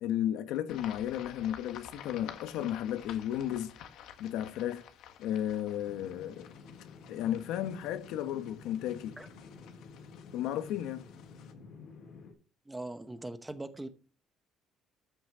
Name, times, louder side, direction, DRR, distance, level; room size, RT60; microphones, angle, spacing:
voice 1, 0.0-3.7 4.2-4.8 5.2-6.5 7.1-9.2 10.3-11.1, left 11 dB, 90° left, 1.3 m, -34 dB
sound 1, 0.7-11.5, left 9 dB, 70° left, 1.6 m, -51 dB
sound 2, 5.8-12.3, left 5 dB, 45° left, 5.4 m, -51 dB
voice 2, 12.7-13.9, right 2 dB, 10° right, 0.9 m, -41 dB
13.0 x 6.3 x 6.9 m
cardioid pair, 165°, 0 cm